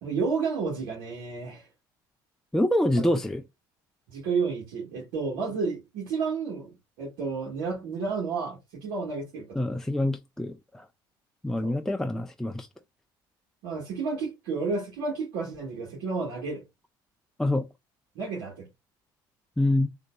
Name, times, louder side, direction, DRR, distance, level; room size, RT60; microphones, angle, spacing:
voice 1, 0.0-1.7 3.0-3.2 4.1-6.7 7.0-9.7 11.6-11.7 13.6-16.6 18.1-18.7, right 4 dB, 80° right, 1.6 m, -31 dB
voice 2, 2.5-3.4 9.6-10.9 11.4-12.7 17.4-17.7 19.6-19.9, left 1 dB, 5° left, 0.4 m, -26 dB
3.8 x 2.7 x 2.3 m
hypercardioid pair, 70°, 10 cm